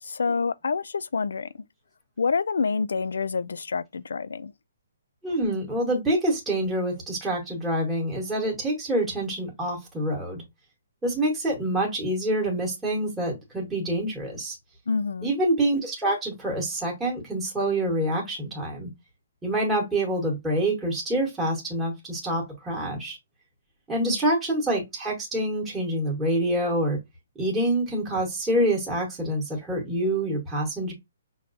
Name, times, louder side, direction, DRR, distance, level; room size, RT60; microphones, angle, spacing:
voice 1, 0.0-1.5 2.2-4.5 14.9-15.3 24.0-24.2, left 5 dB, 85° left, 0.3 m, -27 dB
voice 2, 5.2-10.4 11.0-14.6 15.2-18.9 19.4-23.2 23.9-27.0 27.4-30.9, right 1 dB, 5° right, 0.9 m, -26 dB
5.6 x 2.3 x 2.5 m
hypercardioid pair, 175°, 0 cm